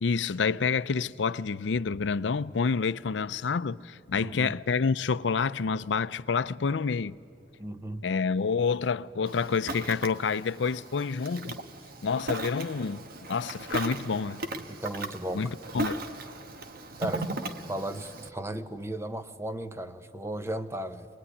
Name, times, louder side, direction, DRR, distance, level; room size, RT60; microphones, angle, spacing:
voice 1, 0.0-7.2 8.0-11.6 12.0-14.4 15.3-16.0, left 5 dB, 75° left, 0.5 m, -28 dB
voice 2, 4.2-4.6 7.6-8.1 14.8-15.6 17.0-17.3 17.7-21.1, right 1 dB, 15° right, 0.9 m, -35 dB
Ocean, 9.3-18.3, right 2 dB, 55° right, 1.2 m, -37 dB
23.5 x 20.0 x 9.8 m
head